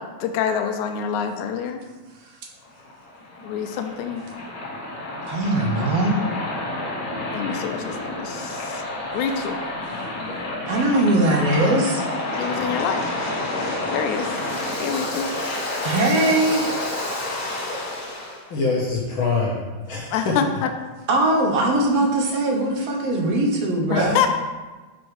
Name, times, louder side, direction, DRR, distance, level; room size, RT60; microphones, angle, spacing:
voice 1, 0.0-1.8 3.4-4.2 5.7-5.9 7.3-8.8 9.1-9.6 12.4-13.0 13.9-14.3 14.8-15.3 20.1-20.7 23.9-24.3, left 7 dB, 85° left, 6 dB, 2.1 m, -26 dB
Waves surf, 2.6-18.4, left 2 dB, 40° left, 1.4 m, -29 dB
voice 2, 5.2-6.2 10.7-12.0 15.8-16.8 21.1-24.2, right 2 dB, 65° right, 1 dB, 1.8 m, -21 dB
voice 3, 18.5-19.6 19.9-20.4 23.9-24.2, left 3 dB, 65° left, -3 dB, 1.3 m, -24 dB
6.2 x 5.2 x 4.7 m, 1.3 s
omnidirectional pair, 3.4 m